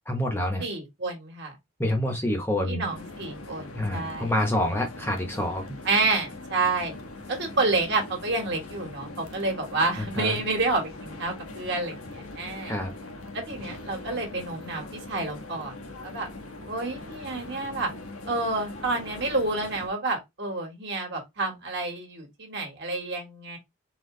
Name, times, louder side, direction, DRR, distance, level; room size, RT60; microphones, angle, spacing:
voice 1, 0.1-0.6 1.8-2.9 3.7-5.6 10.0-10.4 12.7-12.9, left 1 dB, 10° left, 0.8 m, -27 dB
voice 2, 0.6-1.5 2.6-4.3 5.8-6.9 7.3-12.7 13.3-15.8 16.0-16.3 16.7-17.9 18.3-23.6, right 3 dB, 50° right, 1.5 m, -29 dB
sound 1, 2.9-19.9, left 2 dB, 85° left, 1.0 m, -41 dB
4.2 x 2.8 x 3.7 m
head